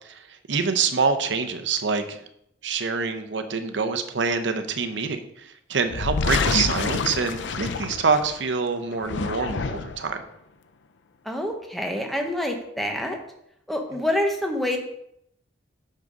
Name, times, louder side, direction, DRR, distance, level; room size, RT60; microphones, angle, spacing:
voice 1, 0.5-2.2 2.6-10.2 13.9-14.0, right 5 dB, 75° right, 8 dB, 0.7 m, -26 dB
sound 1, 5.9-8.4 8.9-10.1, left 4 dB, 75° left, 0.5 m, -27 dB
voice 2, 11.2-13.2 13.7-14.8, left 1 dB, ahead, 2 dB, 1.0 m, -26 dB
6.5 x 6.1 x 5.2 m, 0.76 s
head